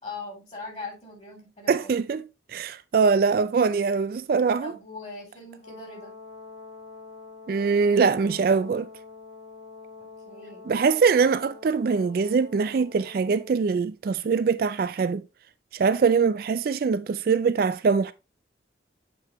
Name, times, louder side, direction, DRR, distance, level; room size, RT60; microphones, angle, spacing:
voice 1, 0.0-1.9 4.6-6.1 10.0-10.7, left 3 dB, 35° left, 3.2 m, -40 dB
voice 2, 1.7-2.2 2.5-4.7 7.5-8.9 10.7-15.2 15.7-18.1, right 5 dB, 50° right, 0.3 m, -23 dB
Brass instrument, 5.6-13.6, left 4 dB, 70° left, 3.1 m, -46 dB
7.7 x 4.5 x 3.0 m
head